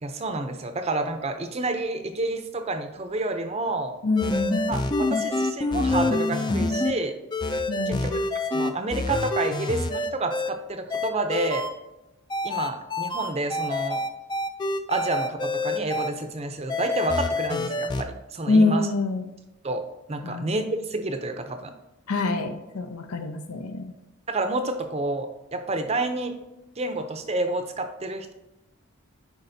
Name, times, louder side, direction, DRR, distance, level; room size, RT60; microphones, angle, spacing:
voice 1, 0.0-4.0 4.7-7.2 7.9-8.2 8.5-11.7 12.4-14.0 14.9-18.9 19.6-19.8 20.1-21.7 24.3-26.4 26.8-28.3, right 2 dB, 30° right, 7 dB, 0.5 m, -29 dB
voice 2, 4.0-4.6 7.7-8.2 18.5-19.3 20.2-20.5 22.1-23.9, left 3 dB, 90° left, 6 dB, 0.7 m, -25 dB
sound 1, 4.2-6.9 7.3-10.5 10.9-11.7 12.3-16.1 16.7-18.0, left 2 dB, 20° left, 0.3 m, -26 dB
10.0 x 4.2 x 2.7 m, 0.96 s
head